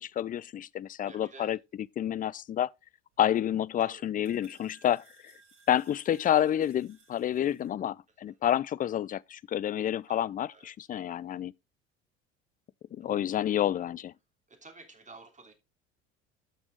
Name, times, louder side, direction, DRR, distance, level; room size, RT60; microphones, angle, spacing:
voice 1, 0.0-1.6 2.0-2.7 3.2-5.3 5.7-11.5 12.9-14.1, left 10 dB, 25° left, 0.4 m, -29 dB
voice 2, 1.1-1.6 3.8-4.0 8.3-8.4 10.1-10.9 11.3-11.4 14.5-15.5, right 3 dB, 20° right, 3.0 m, -52 dB
sound 1, 3.1-7.7, right 4 dB, 65° right, 6.3 m, -62 dB
12.0 x 6.1 x 3.7 m
hypercardioid pair, 65°, 33 cm